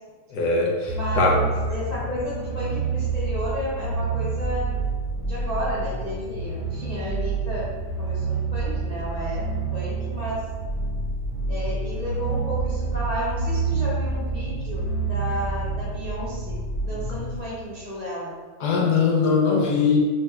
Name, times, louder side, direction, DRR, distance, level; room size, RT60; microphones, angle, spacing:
voice 1, 0.3-0.7 1.2-1.4 18.6-20.0, left 5 dB, 65° left, -2 dB, 1.2 m, -20 dB
voice 2, 0.9-4.7 5.3-7.7 8.0-9.4 9.7-10.4 11.5-16.6 16.9-18.3, equal, 85° left, -8 dB, 0.3 m, -32 dB
sound 1, 0.9-17.4, right 4 dB, 30° right, 0.4 m, -28 dB
4.1 x 3.4 x 3.3 m, 1.5 s
omnidirectional pair, 2.1 m